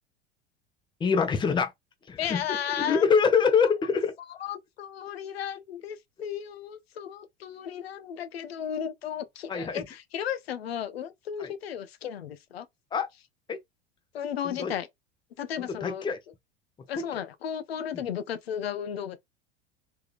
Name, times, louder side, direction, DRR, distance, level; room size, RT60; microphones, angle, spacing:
voice 1, 1.0-1.7 2.1-2.4 2.8-4.1 9.5-9.8 11.4-11.5 12.9-13.1 13.5-13.6 14.4-14.7 15.6-16.2, left 6 dB, 15° left, 0.7 m, -24 dB
voice 2, 2.2-3.0 4.3-12.7 14.1-14.9 15.4-16.1 16.9-19.2, left 9 dB, 70° left, 0.6 m, -34 dB
3.5 x 3.3 x 2.4 m
figure-of-eight pair, 80°, 32 cm